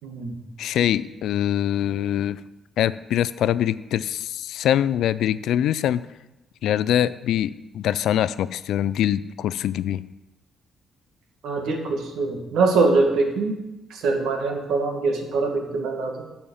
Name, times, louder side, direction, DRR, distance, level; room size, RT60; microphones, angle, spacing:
voice 1, 0.0-0.4 11.4-13.6 13.9-16.2, right 3 dB, 80° right, 3 dB, 2.0 m, -23 dB
voice 2, 0.6-2.4 2.8-6.0 6.6-10.0, left 11 dB, 80° left, 16 dB, 0.4 m, -23 dB
10.5 x 5.7 x 7.1 m, 0.99 s
cardioid pair, 90°, 0 cm